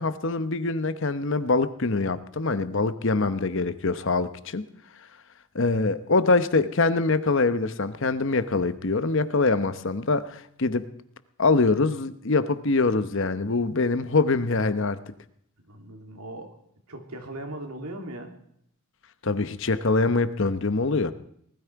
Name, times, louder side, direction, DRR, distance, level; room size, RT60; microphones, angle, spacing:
voice 1, 0.0-4.6 5.5-10.9 11.4-15.0 19.2-21.1, left 3 dB, 55° left, 12 dB, 0.9 m, -24 dB
voice 2, 15.6-16.6 16.9-18.3, right 1 dB, 85° right, 3 dB, 2.9 m, -38 dB
19.5 x 13.5 x 4.7 m, 0.70 s
head